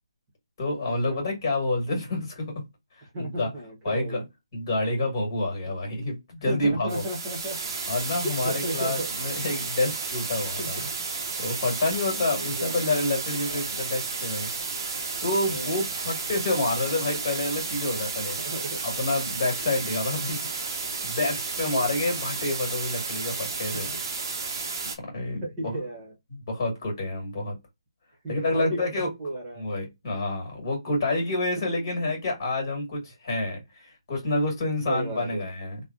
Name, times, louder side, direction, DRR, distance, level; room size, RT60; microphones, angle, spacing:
voice 1, 0.6-2.5 2.9-3.5 3.8-4.2 4.5-7.0 7.9-10.8 11.4-14.7 15.2-18.4 18.8-20.4 20.8-23.9 25.0-25.8 26.3-27.6 28.3-29.1 29.6-35.8, left 2 dB, 35° left, 1.8 m, -28 dB
voice 2, 3.1-4.2 6.4-7.6 8.4-9.1 10.6-10.9 12.4-12.8 13.5-13.6 14.3-14.7 15.5-15.8 18.4-18.8 21.6-21.9 23.7-23.9 25.4-26.1 28.2-29.7 34.9-35.5, right 1 dB, 20° right, 1.2 m, -34 dB
sound 1, 6.9-25.0, right 4 dB, 35° right, 0.8 m, -32 dB
3.2 x 2.2 x 2.5 m
hypercardioid pair, 165°, 3 cm